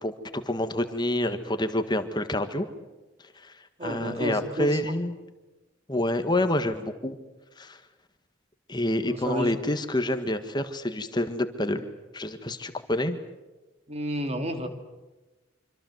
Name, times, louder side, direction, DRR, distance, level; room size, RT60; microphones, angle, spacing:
voice 1, 0.0-2.7 3.3-5.1 5.9-7.2 7.6-7.8 8.7-11.9 12.1-13.2, left 1 dB, 20° left, 8 dB, 1.6 m, -28 dB
voice 2, 3.8-4.9 9.0-9.6 13.9-14.7, equal, 35° right, 6 dB, 2.8 m, -31 dB
26.0 x 25.5 x 7.9 m, 1.1 s
head